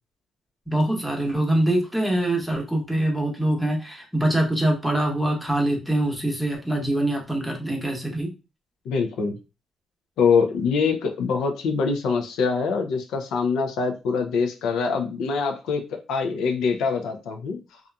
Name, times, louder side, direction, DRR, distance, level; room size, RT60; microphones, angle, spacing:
voice 1, 0.7-8.3, right 1 dB, 5° right, 0 dB, 0.9 m, -24 dB
voice 2, 8.9-9.3 10.2-17.6, left 5 dB, 85° left, 4 dB, 0.4 m, -24 dB
2.7 x 2.4 x 2.2 m, 0.30 s
cardioid pair, 90°, 0 cm